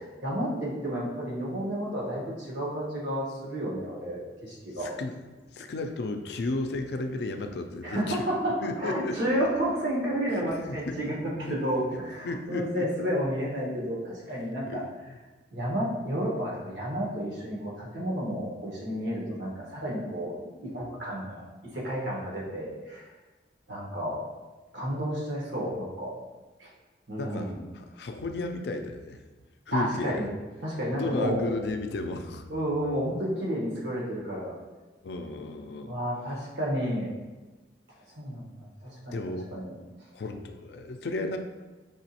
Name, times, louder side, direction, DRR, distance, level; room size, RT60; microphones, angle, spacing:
voice 1, 0.2-4.9 7.8-14.8 15.5-20.3 20.6-21.4 21.7-23.1 23.7-24.2 24.7-26.1 26.6-26.7 27.1-27.6 29.7-30.3 30.6-31.4 32.5-34.6 35.8-37.1 38.1-38.5 38.8-39.2 39.5-39.7, equal, 80° right, -3 dB, 1.2 m, -31 dB
voice 2, 4.8-5.1 5.5-8.2 8.6-9.1 10.3-11.0 11.4-11.6 11.9-12.8 14.6-15.2 27.2-29.2 29.7-30.3 30.9-32.5 35.0-36.0 39.1-39.5 40.1-41.4, left 2 dB, 60° left, 6 dB, 0.4 m, -34 dB
5.4 x 3.0 x 2.9 m, 1.2 s
head